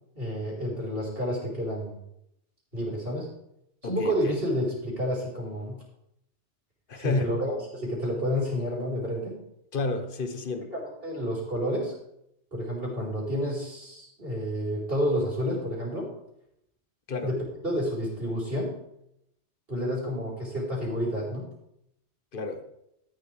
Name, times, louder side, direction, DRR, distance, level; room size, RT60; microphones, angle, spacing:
voice 1, 0.1-2.0 2.7-3.3 3.8-5.8 7.0-9.4 10.7-11.9 12.5-16.1 17.2-18.8 19.7-21.5, equal, 55° right, -4 dB, 4.5 m, -30 dB
voice 2, 3.8-4.4 6.9-7.4 9.7-10.7 17.1-17.3 22.3-22.6, left 3 dB, 50° left, 7 dB, 1.2 m, -31 dB
13.5 x 11.0 x 3.4 m, 0.81 s
omnidirectional pair, 1.2 m